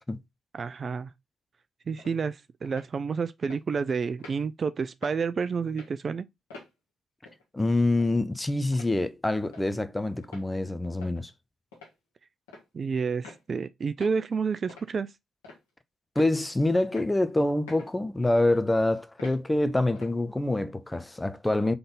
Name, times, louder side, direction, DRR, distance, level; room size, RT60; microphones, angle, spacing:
voice 1, 0.5-1.1 1.9-6.3 12.7-15.1, right 5 dB, 50° right, 0.4 m, -30 dB
sound 1, 2.0-2.1 2.6-2.9 3.5-3.6 4.2-4.4 5.0-5.2 5.7-5.9 6.5-6.7 7.3-7.4 8.0-8.1 8.7-8.9 9.5-9.7 10.2-10.5 11.0-11.2 11.7-11.9 12.5-12.7 13.2-13.4 14.0-14.2 14.7-14.9 15.4-15.7 16.2-16.4 16.9-17.1 17.7-17.9 18.4-18.6 19.2-19.4 20.0-20.2, left 3 dB, 90° left, 1.5 m, -47 dB
voice 2, 7.5-11.3 16.2-21.7, left 2 dB, 15° left, 0.7 m, -26 dB
3.9 x 3.4 x 3.8 m
hypercardioid pair, 40°, 0 cm